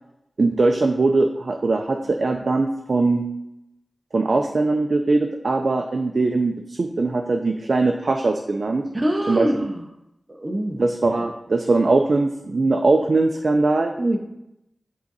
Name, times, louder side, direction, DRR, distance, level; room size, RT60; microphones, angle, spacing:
voice 1, 0.4-3.3 4.1-8.8 9.3-9.5 10.8-13.9, right 3 dB, 65° right, 4 dB, 0.5 m, -21 dB
voice 2, 8.9-9.8 10.3-10.8 14.0-14.2, right 1 dB, 30° right, 2 dB, 0.8 m, -24 dB
7.9 x 3.7 x 4.1 m, 0.86 s
wide cardioid pair, 65°, 0 cm